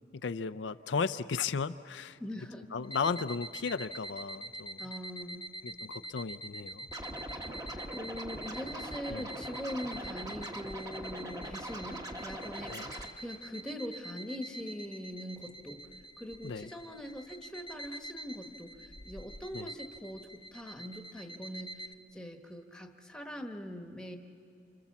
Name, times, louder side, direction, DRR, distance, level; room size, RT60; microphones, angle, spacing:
voice 1, 0.1-2.2 2.7-4.8 5.6-6.9 9.1-9.2 12.7-12.9 16.4-16.7 19.5-19.7, left 5 dB, 85° left, 12 dB, 0.5 m, -35 dB
voice 2, 2.2-2.7 4.8-5.5 7.6-15.9 16.2-21.9 22.1-24.2, equal, 5° left, 4 dB, 1.2 m, -42 dB
sound 1, 2.8-21.9, right 1 dB, 25° left, 0.7 m, -46 dB
Scratching (performance technique), 6.9-13.1, right 1 dB, 20° right, 1.3 m, -42 dB
28.5 x 26.5 x 7.3 m, 2.8 s
head